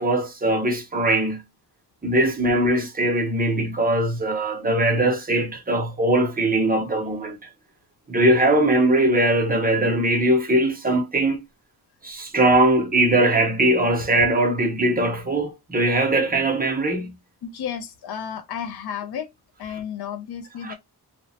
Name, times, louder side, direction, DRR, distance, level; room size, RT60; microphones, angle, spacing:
voice 1, 0.0-1.4 2.0-7.4 8.1-11.4 12.0-17.2 20.6-20.7, right 1 dB, 25° right, 0.6 m, -21 dB
voice 2, 17.4-19.3 19.6-20.7, left 8 dB, 70° left, 0.5 m, -32 dB
2.9 x 2.0 x 2.7 m
wide cardioid pair, 165°, 40 cm